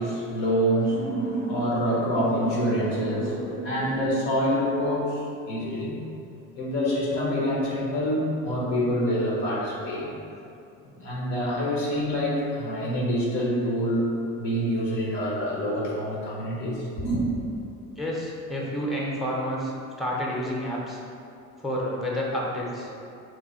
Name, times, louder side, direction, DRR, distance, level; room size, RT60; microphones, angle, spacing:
voice 1, 0.0-6.0 6.5-10.1 10.8-17.2, equal, 80° left, -5 dB, 1.0 m, -26 dB
voice 2, 18.0-21.0 21.6-22.9, equal, ahead, -3 dB, 0.7 m, -29 dB
3.1 x 2.2 x 4.2 m, 2.6 s
supercardioid pair, 65°, 40 cm